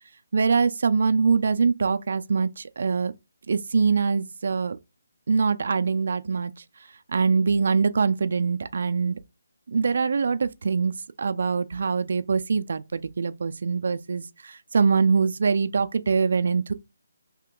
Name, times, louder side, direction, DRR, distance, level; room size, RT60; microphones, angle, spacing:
voice 1, 0.3-3.1 3.5-4.8 5.3-6.5 7.1-9.2 9.7-16.7, right 5 dB, 55° right, 0.4 m, -23 dB
2.9 x 2.8 x 3.7 m
figure-of-eight pair, 145°, 0 cm